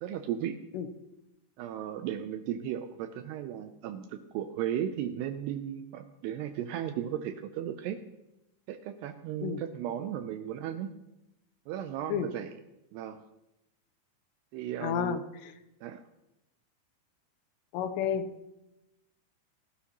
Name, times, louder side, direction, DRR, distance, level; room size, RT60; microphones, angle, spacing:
voice 1, 0.0-0.6 1.6-8.0 8.7-10.9 11.7-12.5 12.9-13.2 14.5-15.2 15.8-16.0, right 10 dB, 85° right, 8 dB, 2.3 m, -35 dB
voice 2, 14.8-15.5 17.7-18.3, left 8 dB, 80° left, 7 dB, 2.7 m, -31 dB
28.5 x 12.0 x 3.0 m, 0.96 s
omnidirectional pair, 5.5 m